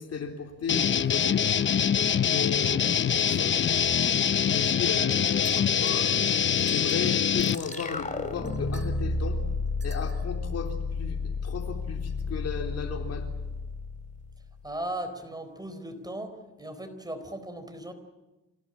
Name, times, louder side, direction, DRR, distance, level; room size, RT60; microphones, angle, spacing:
voice 1, 0.0-1.4 2.2-2.8 3.1-3.6 4.4-6.2 6.7-9.4 9.8-13.3, left 6 dB, 55° left, 4 dB, 3.7 m, -35 dB
sound 1, 0.7-7.6, left 8 dB, 40° left, 0.8 m, -24 dB
voice 2, 2.6-3.0 14.6-17.9, right 1 dB, 15° right, 8 dB, 4.1 m, -37 dB
sound 2, 5.4-6.1 6.6-7.2 7.5-8.0 8.4-8.9 9.8-10.3, right 5 dB, 40° right, 4.1 m, -50 dB
sound 3, 7.4-14.7, left 3 dB, 25° left, 3.3 m, -32 dB
27.0 x 17.5 x 9.9 m, 1.1 s
cardioid pair, 90°, 30 cm